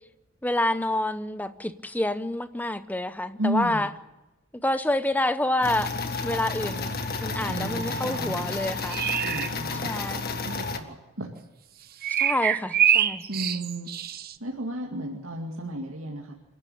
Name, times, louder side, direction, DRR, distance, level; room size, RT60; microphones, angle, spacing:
voice 1, 0.4-3.9 4.6-5.9 6.2-6.9 7.2-9.0 9.8-10.3 12.2-13.2, left 1 dB, 10° left, 0.9 m, -28 dB
voice 2, 3.4-3.9 7.5-8.4 9.2-9.9 10.3-11.3 13.3-13.9 14.4-16.3, right 1 dB, 75° right, 2.3 m, -33 dB
sound 1, 5.6-10.8, left 4 dB, 45° left, 1.7 m, -31 dB
sound 2, 8.5-9.5 12.0-14.3, right 9 dB, 45° right, 0.8 m, -25 dB
28.0 x 12.0 x 8.7 m
head